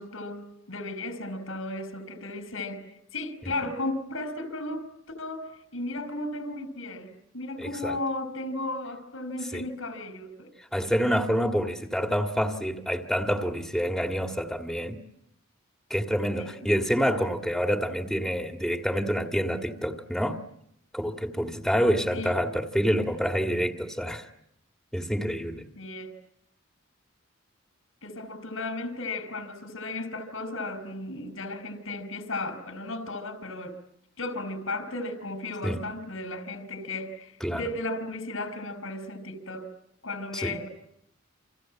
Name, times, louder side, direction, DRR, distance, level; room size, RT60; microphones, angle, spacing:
voice 1, 0.0-2.9 3.1-10.5 10.8-11.0 16.4-16.6 22.1-22.3 25.8-26.1 28.0-33.8 34.2-39.7 40.0-40.7, left 2 dB, 85° left, 5.2 m, -35 dB
voice 2, 7.6-8.0 9.5-9.6 10.7-15.0 15.9-20.4 20.9-24.3 24.9-25.7 35.6-35.8 37.4-37.6 40.3-40.6, equal, ahead, 1.9 m, -27 dB
29.0 x 27.0 x 7.6 m
head